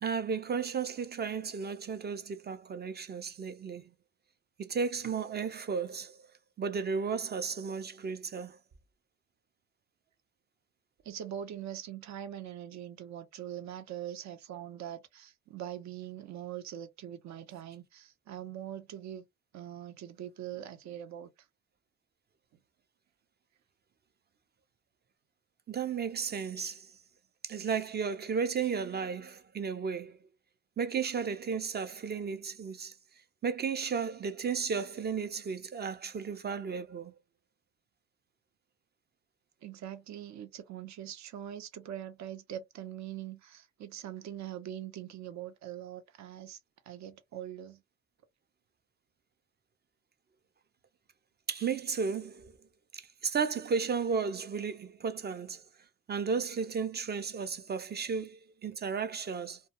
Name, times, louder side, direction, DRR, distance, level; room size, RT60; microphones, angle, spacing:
voice 1, 0.0-3.8 4.6-6.2 6.6-8.6 25.7-26.9 27.4-30.2 30.8-32.9 33.4-37.1 51.5-52.5 52.9-55.6 56.1-59.6, right 6 dB, 35° right, 0.4 m, -34 dB
voice 2, 11.0-19.2 19.5-21.3 39.6-46.6 46.9-47.8, right 10 dB, 65° right, 0.7 m, -42 dB
2.3 x 2.2 x 2.8 m
cardioid pair, 90°, 30 cm